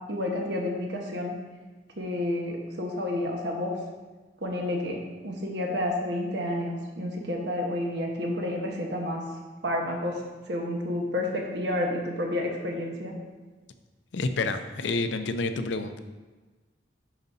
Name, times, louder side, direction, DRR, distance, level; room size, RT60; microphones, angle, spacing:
voice 1, 0.1-1.4 2.0-3.7 4.4-9.2 9.6-10.2 10.5-13.1, left 1 dB, 65° right, 0 dB, 1.1 m, -30 dB
voice 2, 14.1-16.0, left 3 dB, 80° left, 9 dB, 0.5 m, -29 dB
10.5 x 5.0 x 2.7 m, 1.3 s
head